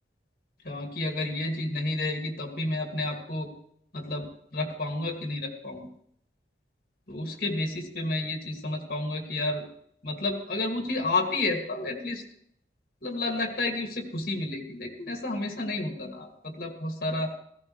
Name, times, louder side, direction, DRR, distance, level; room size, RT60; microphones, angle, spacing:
voice 1, 0.6-3.5 3.9-5.9 7.1-9.7 10.0-12.2 13.0-17.3, left 2 dB, 55° left, 3 dB, 2.4 m, -31 dB
16.0 x 15.5 x 3.2 m, 0.69 s
head